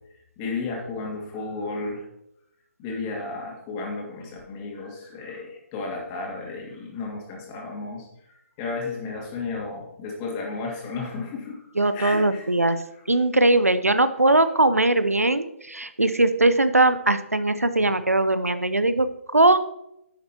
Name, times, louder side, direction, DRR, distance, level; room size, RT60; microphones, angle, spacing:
voice 1, 0.4-2.0 2.8-12.5, left 3 dB, 20° left, -1 dB, 2.5 m, -33 dB
voice 2, 11.8-12.8 13.1-19.6, right 2 dB, 85° right, 12 dB, 0.7 m, -20 dB
11.0 x 8.8 x 2.9 m, 0.81 s
figure-of-eight pair, 140°, 8 cm